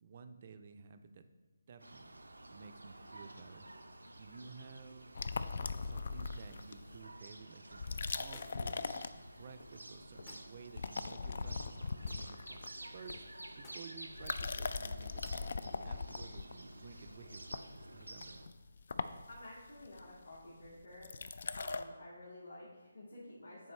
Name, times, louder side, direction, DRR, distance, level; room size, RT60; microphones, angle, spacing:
voice 1, 0.0-1.2 1.7-2.2 2.5-3.7 4.2-5.1 5.8-12.7 12.9-13.2 13.6-18.4, right 5 dB, 40° right, 9 dB, 0.5 m, -54 dB
sound 1, 1.8-18.5, right 1 dB, 85° right, 0.6 m, -52 dB
sound 2, 5.2-7.0 7.7-9.7 10.0-10.3 10.6-13.6 14.1-21.8, left 4 dB, 55° left, 0.3 m, -41 dB
sound 3, 8.3-8.8 10.3-10.6 12.1-12.3 13.6-14.0 15.2-15.4, left 4 dB, 25° left, 0.6 m, -58 dB
voice 2, 19.3-21.1 21.5-23.7, left 1 dB, 75° left, -7 dB, 1.8 m, -51 dB
9.7 x 4.2 x 3.2 m, 1.2 s
figure-of-eight pair, 150°, 0 cm